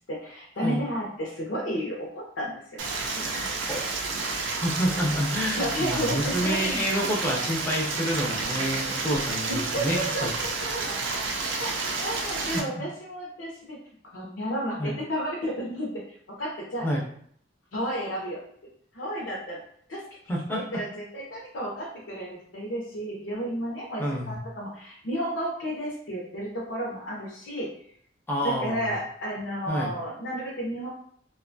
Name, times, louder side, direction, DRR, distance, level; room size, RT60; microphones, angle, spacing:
voice 1, 0.1-2.6 2.9-3.0 3.3-3.5 5.6-6.9 9.5-11.3 11.6-11.7 12.0-13.8 14.1-15.9 16.4-16.8 17.7-18.4 18.9-19.6 19.9-20.0 20.7-27.7 28.4-30.9, equal, 75° left, -4 dB, 0.6 m, -32 dB
Stream, 2.8-12.6, right 3 dB, 80° right, 0.4 m, -30 dB
voice 2, 4.6-10.3 12.5-12.6 14.8-14.9 16.8-17.0 20.3-20.6 24.0-24.3 28.3-29.0 29.7-29.9, equal, 10° left, -4 dB, 0.5 m, -28 dB
2.5 x 2.2 x 2.5 m, 0.63 s
head